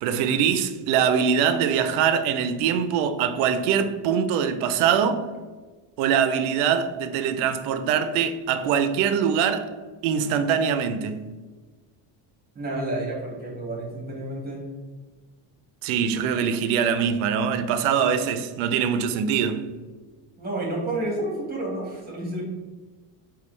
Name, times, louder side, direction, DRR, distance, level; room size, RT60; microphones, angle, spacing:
voice 1, 0.0-5.3 6.0-9.7 10.0-11.2 15.8-19.6, right 7 dB, 75° right, 0.6 m, -23 dB
voice 2, 12.5-14.7 20.4-22.4, right 1 dB, 20° right, 1.5 m, -30 dB
5.2 x 2.4 x 3.1 m
supercardioid pair, 100°, 50 cm